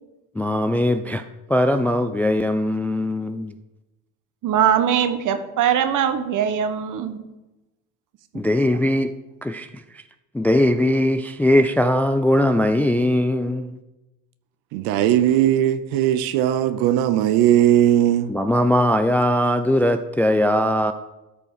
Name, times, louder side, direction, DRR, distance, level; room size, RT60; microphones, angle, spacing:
voice 1, 0.4-1.2 1.5-3.5 8.3-9.1 9.4-10.0 10.3-13.7 18.3-20.9, left 1 dB, 5° left, 9 dB, 0.3 m, -20 dB
voice 2, 4.4-7.2, right 9 dB, 50° right, 9 dB, 1.3 m, -21 dB
voice 3, 14.7-18.3, right 11 dB, 65° right, 11 dB, 0.7 m, -18 dB
13.0 x 5.2 x 4.9 m, 1.0 s
supercardioid pair, 85°, 40 cm